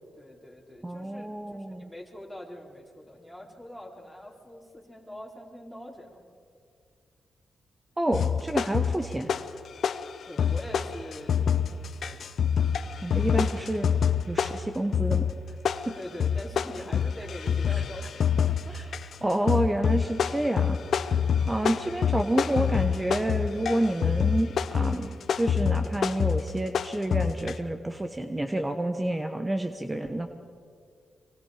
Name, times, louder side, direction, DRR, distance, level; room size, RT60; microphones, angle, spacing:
voice 1, 0.2-6.2 10.2-12.3 16.0-18.1 18.5-18.8, left 1 dB, ahead, -3 dB, 4.0 m, -43 dB
voice 2, 0.8-1.9 8.0-9.3 13.0-13.9 14.3-15.2 15.8-15.9 18.7-18.9 19.2-21.2 21.5-30.3, right 1 dB, 15° right, 6 dB, 1.2 m, -29 dB
sound 1, 8.1-9.6 9.8-27.5, left 7 dB, 70° left, 0.7 m, -26 dB
24.5 x 24.5 x 5.0 m, 2.2 s
cardioid pair, 60°, 0 cm